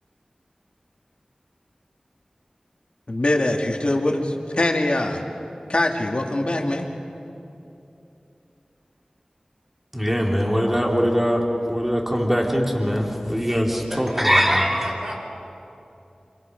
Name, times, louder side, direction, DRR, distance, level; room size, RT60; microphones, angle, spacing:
voice 1, 3.1-5.2 5.7-6.9, left 1 dB, 55° left, 1 dB, 2.3 m, -23 dB
voice 2, 9.9-14.9, equal, 10° right, -1 dB, 3.4 m, -21 dB
voice 3, 13.9-15.1, equal, 45° right, -3 dB, 6.9 m, -35 dB
26.0 x 25.5 x 5.4 m, 2.8 s
wide cardioid pair, 45°, 2 cm